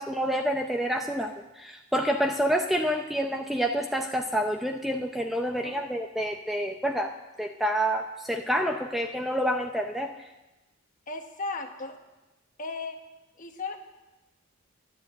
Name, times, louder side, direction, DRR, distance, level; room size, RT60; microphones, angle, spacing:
voice 1, 0.0-7.1 7.4-10.1, equal, ahead, 3 dB, 0.6 m, -28 dB
voice 2, 11.1-12.0 12.6-13.0 13.4-13.8, left 3 dB, 40° left, 5 dB, 1.3 m, -35 dB
11.5 x 10.5 x 7.8 m, 1.1 s
head